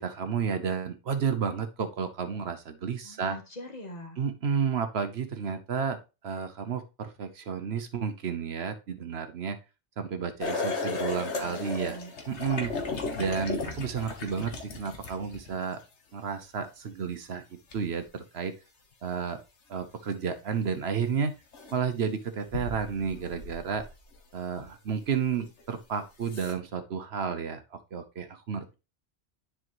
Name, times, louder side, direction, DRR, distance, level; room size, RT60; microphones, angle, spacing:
voice 1, 0.0-3.4 4.2-6.0 6.2-9.6 10.0-12.0 12.3-12.8 13.2-15.8 16.1-17.4 17.7-18.5 19.0-19.4 19.7-21.3 21.7-23.8 24.3-28.7, right 6 dB, 65° right, 9 dB, 1.1 m, -31 dB
voice 2, 3.0-4.2 11.2-12.1, left 1 dB, 35° left, 2 dB, 1.5 m, -43 dB
sound 1, 10.4-15.7 17.7-17.8 20.6-20.7 21.5-21.8 22.5-24.2 24.6-24.7 25.6-25.7 26.2-26.5, left 4 dB, 70° left, 1.5 m, -35 dB
10.0 x 4.6 x 3.0 m, 0.28 s
omnidirectional pair, 1.2 m